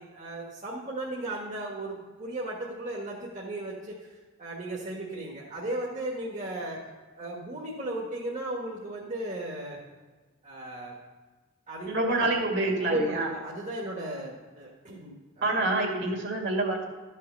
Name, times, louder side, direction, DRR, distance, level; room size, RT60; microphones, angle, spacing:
voice 1, 0.0-6.8 7.1-9.8 10.4-10.9 11.7-12.1 12.6-15.5, right 1 dB, 35° right, -3 dB, 1.5 m, -35 dB
voice 2, 11.9-13.3 15.4-16.9, right 2 dB, 60° right, 1 dB, 2.2 m, -27 dB
12.5 x 5.7 x 6.7 m, 1.3 s
head